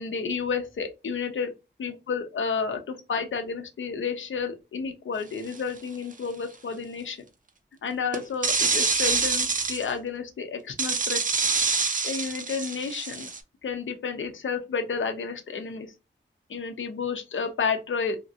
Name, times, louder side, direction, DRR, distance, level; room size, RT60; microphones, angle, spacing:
voice 1, 0.0-1.5 1.8-7.2 7.8-11.3 12.0-13.3 13.6-15.9 16.5-18.2, left 5 dB, 80° left, 7 dB, 0.6 m, -31 dB
sound 1, 5.5-5.8 8.1-9.9 10.8-13.4, right 4 dB, 45° right, 0.4 m, -26 dB
2.8 x 2.4 x 2.7 m, 0.27 s
wide cardioid pair, 75°, 20 cm